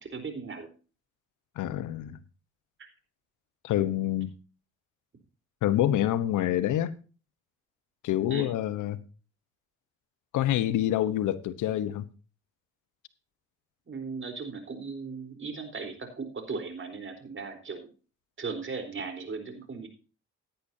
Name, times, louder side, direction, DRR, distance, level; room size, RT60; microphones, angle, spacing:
voice 1, 0.1-0.7 8.3-8.5 13.9-17.9 18.4-19.9, right 4 dB, 40° right, 4.1 m, -37 dB
voice 2, 1.6-2.2 3.6-4.3 5.6-6.9 8.0-9.0 10.3-12.1, left 12 dB, 85° left, 1.1 m, -27 dB
16.5 x 10.5 x 2.8 m
cardioid pair, 90°, 30 cm